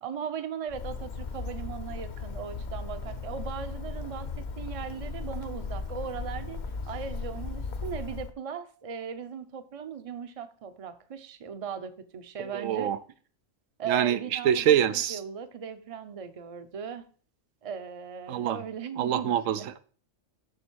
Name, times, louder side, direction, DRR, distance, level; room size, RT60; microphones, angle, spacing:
voice 1, 0.0-12.9 13.8-17.0 17.6-19.7, right 7 dB, 35° right, 10 dB, 0.6 m, -38 dB
Bird, 0.7-8.3, left 4 dB, 45° left, 0.7 m, -36 dB
voice 2, 12.4-13.0 13.9-15.2 18.3-18.6 19.0-19.8, right 10 dB, 90° right, 12 dB, 1.0 m, -25 dB
7.0 x 6.3 x 4.5 m, 0.42 s
omnidirectional pair, 1.3 m